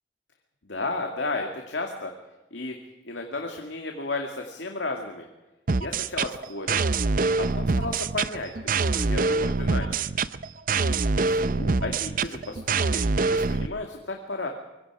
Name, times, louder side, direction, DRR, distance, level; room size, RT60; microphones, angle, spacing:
voice 1, 0.6-2.1 2.5-2.8 3.1-5.3 5.8-6.8 7.4-10.0 10.8-13.0 13.3-14.5, left 2 dB, 80° left, 3 dB, 2.2 m, -33 dB
sound 1, 5.7-13.7, right 4 dB, 50° right, 0.6 m, -25 dB
25.0 x 23.5 x 4.8 m, 1.1 s
head